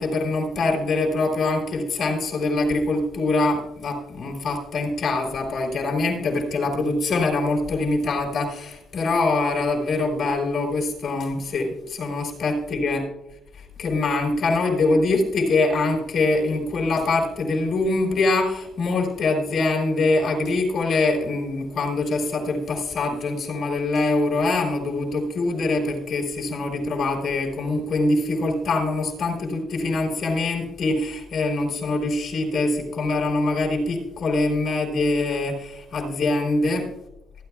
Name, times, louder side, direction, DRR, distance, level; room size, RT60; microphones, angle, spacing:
voice 1, 0.0-13.0 13.8-36.9, left 2 dB, 60° left, 1 dB, 3.6 m, -24 dB
26.0 x 9.4 x 2.4 m, 0.86 s
cardioid pair, 90°, 0 cm